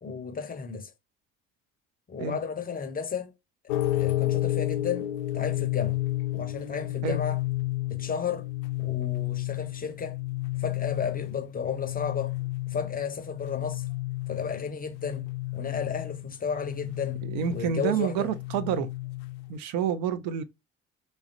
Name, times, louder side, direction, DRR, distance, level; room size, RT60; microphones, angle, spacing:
voice 1, 0.0-0.9 2.1-3.3 3.6-5.1 5.3-6.0 6.3-7.4 7.9-8.5 8.8-10.2 10.6-12.3 12.7-13.8 14.3-15.3 15.5-17.2 17.5-18.3, left 6 dB, 25° left, 0.6 m, -33 dB
sound 1, 3.7-19.6, left 16 dB, 75° left, 0.5 m, -31 dB
voice 2, 17.2-18.9 19.5-20.4, right 8 dB, 65° right, 0.6 m, -28 dB
3.2 x 2.3 x 2.5 m
figure-of-eight pair, 55°, 37 cm